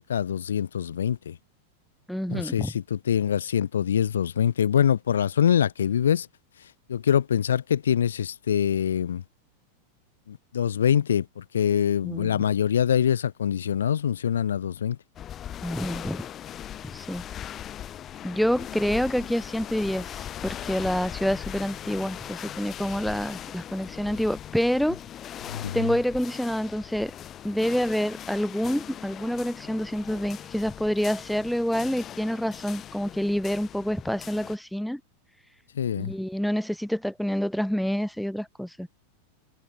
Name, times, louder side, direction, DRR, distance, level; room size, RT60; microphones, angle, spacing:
voice 1, 0.1-1.4 2.3-6.3 6.9-9.2 10.3-15.0 25.5-25.9 35.8-36.1, left 9 dB, 65° left, 0.3 m, -24 dB
voice 2, 2.1-2.7 12.0-12.4 15.6-16.2 16.9-17.2 18.2-25.0 25.7-27.1 27.4-35.0 36.0-38.9, equal, ahead, 0.6 m, -27 dB
sound 1, 15.1-34.6, left 10 dB, 30° left, 0.8 m, -39 dB
figure-of-eight pair, 90°, 0 cm